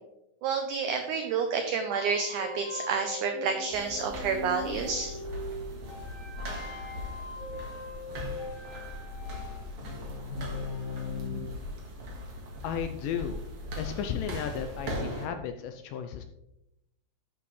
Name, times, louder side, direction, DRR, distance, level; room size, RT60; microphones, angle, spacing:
voice 1, 0.4-5.2, right 5 dB, 90° right, 5 dB, 1.7 m, -29 dB
sound 1, 1.9-11.5, left 4 dB, 60° left, 0.9 m, -40 dB
sound 2, 3.7-15.3, equal, 50° right, 1.8 m, -39 dB
voice 2, 12.6-13.4 13.8-16.2, left 8 dB, 80° left, 7 dB, 2.0 m, -34 dB
11.5 x 6.1 x 3.2 m, 0.87 s
omnidirectional pair, 4.3 m